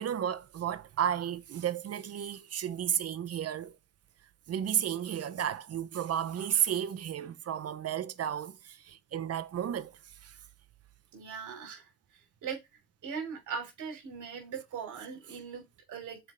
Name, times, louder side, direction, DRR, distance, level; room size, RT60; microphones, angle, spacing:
voice 1, 0.0-3.7 4.5-9.9 10.2-10.4, right 9 dB, 55° right, 0.9 m, -33 dB
voice 2, 11.1-11.9 12.4-12.6 13.0-16.2, right 6 dB, 75° right, 3.3 m, -39 dB
6.4 x 4.8 x 4.4 m
cardioid pair, 90°, 30 cm